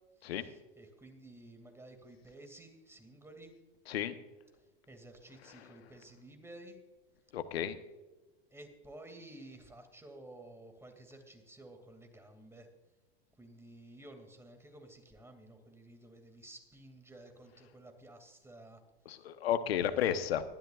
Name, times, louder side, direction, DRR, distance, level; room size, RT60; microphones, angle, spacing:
voice 1, 0.2-3.5 4.9-6.8 8.5-12.7 13.4-18.8 19.7-20.1, right 1 dB, 10° right, 5 dB, 2.4 m, -53 dB
voice 2, 7.3-7.8 19.1-20.4, left 10 dB, 85° left, 11 dB, 1.0 m, -32 dB
20.0 x 12.0 x 2.4 m, 1.2 s
hypercardioid pair, 100°, 30 cm